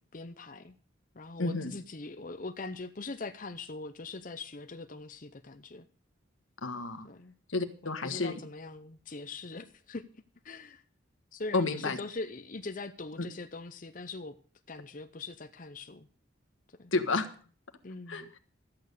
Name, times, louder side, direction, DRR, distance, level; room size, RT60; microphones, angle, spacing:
voice 1, 0.1-0.8 1.1-5.9 7.0-7.3 7.8-10.8 11.3-14.4 14.7-16.1 16.7-16.9 17.8-18.3, left 3 dB, 40° left, 8 dB, 0.7 m, -42 dB
voice 2, 1.4-1.7 6.6-7.1 7.5-8.4 11.5-12.0 16.9-17.3 18.1-18.2, left 3 dB, 80° left, 8 dB, 1.5 m, -30 dB
13.5 x 9.0 x 6.7 m, 0.42 s
head